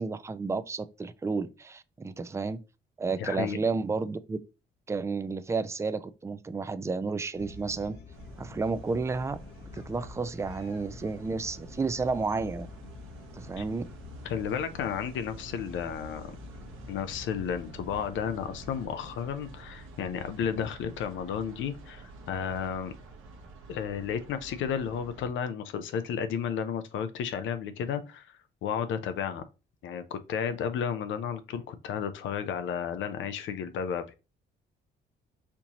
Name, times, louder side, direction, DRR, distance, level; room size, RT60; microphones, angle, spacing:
voice 1, 0.0-2.6 3.0-4.4 4.9-8.0 8.4-9.4 9.7-12.7 13.3-13.9, right 4 dB, 15° right, 0.3 m, -31 dB
voice 2, 3.2-3.6 13.6-13.7 14.2-16.3 16.9-22.9 23.7-28.3 28.6-29.4 29.8-34.1, left 7 dB, 75° left, 0.5 m, -33 dB
sound 1, 7.3-18.9, left 3 dB, 60° left, 0.8 m, -47 dB
sound 2, 8.1-25.3, right 3 dB, 90° right, 0.8 m, -49 dB
4.4 x 2.7 x 2.9 m
cardioid pair, 90°, 20 cm